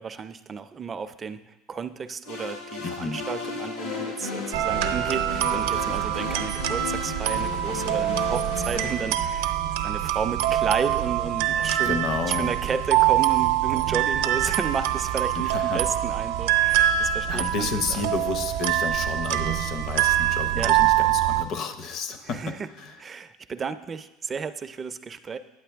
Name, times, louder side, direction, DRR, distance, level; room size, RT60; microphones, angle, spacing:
voice 1, 0.0-9.5 9.8-18.0 20.6-20.7 22.2-22.6 23.0-25.4, right 6 dB, 25° right, 11 dB, 0.4 m, -32 dB
sound 1, 2.2-9.1, left 3 dB, 90° left, 1.9 m, -34 dB
voice 2, 2.8-3.2 11.8-12.5 15.3-15.8 17.3-23.0, left 5 dB, 45° left, 9 dB, 0.6 m, -31 dB
sound 2, 4.5-21.4, right 12 dB, 80° right, 0.5 m, -24 dB
9.3 x 7.6 x 3.4 m, 1.0 s
supercardioid pair, 125°, 0 cm